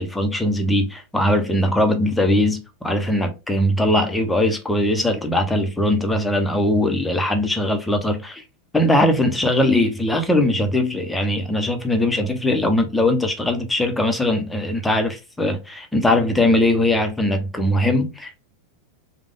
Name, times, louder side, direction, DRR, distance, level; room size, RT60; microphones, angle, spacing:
voice 1, 0.0-8.4 8.7-18.4, left 1 dB, 5° left, 1.1 m, -20 dB
5.0 x 2.4 x 3.7 m
figure-of-eight pair, 90°, 0 cm